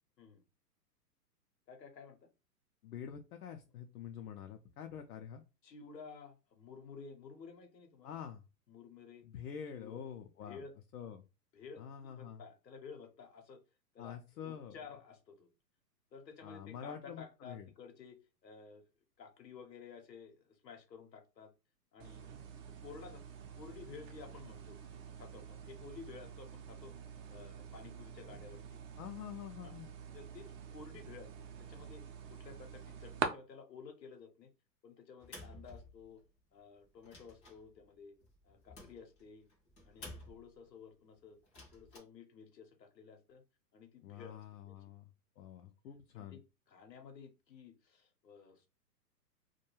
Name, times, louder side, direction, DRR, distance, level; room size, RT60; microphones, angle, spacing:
voice 1, 1.7-2.3 5.6-8.1 8.7-9.2 9.7-10.0 10.4-10.8 11.5-13.6 13.9-15.5 16.1-18.8 19.2-21.5 21.9-22.3 22.7-23.2 23.6-24.8 25.1-26.9 27.3-28.8 29.6-29.7 30.1-31.3 31.7-32.0 32.3-34.5 34.8-36.2 36.5-38.2 38.4-39.5 39.8-41.4 41.7-43.4 43.7-44.3 44.6-44.8 46.1-46.4 46.7-48.7, left 5 dB, 85° left, 4 dB, 0.9 m, -53 dB
voice 2, 2.8-5.4 8.0-8.4 9.2-10.6 10.9-11.3 11.8-12.4 14.0-14.8 16.4-17.7 29.0-29.9 44.0-45.1 45.4-46.4, left 8 dB, 65° left, 4 dB, 0.5 m, -47 dB
sound 1, 22.0-33.3, right 7 dB, 50° right, 0.7 m, -46 dB
sound 2, 35.2-36.4 36.8-40.7 41.4-42.0, left 2 dB, 15° left, 0.4 m, -53 dB
2.3 x 2.2 x 3.0 m, 0.30 s
hypercardioid pair, 120°, 49 cm